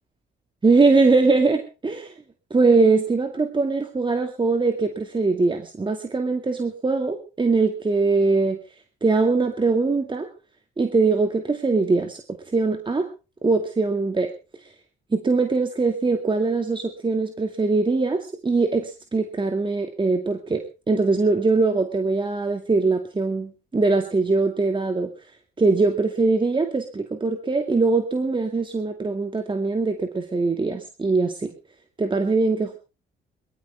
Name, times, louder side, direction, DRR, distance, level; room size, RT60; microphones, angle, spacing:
voice 1, 0.6-2.1 2.5-8.6 9.0-10.3 10.8-12.2 12.5-13.1 13.4-14.3 15.1-20.6 20.9-25.1 25.6-31.5 32.0-32.8, right 3 dB, 25° right, 5 dB, 2.1 m, -22 dB
21.5 x 13.5 x 3.5 m, 0.33 s
cardioid pair, 90°, 20 cm